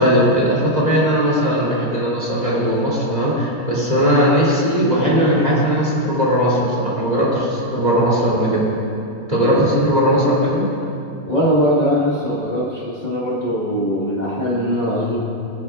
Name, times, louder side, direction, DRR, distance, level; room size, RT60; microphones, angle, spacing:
voice 1, 0.0-8.7 9.3-10.7, equal, 25° right, -6 dB, 3.2 m, -18 dB
voice 2, 11.3-15.2, equal, 30° left, -8 dB, 1.6 m, -21 dB
22.5 x 10.0 x 2.5 m, 2.7 s
omnidirectional pair, 1.6 m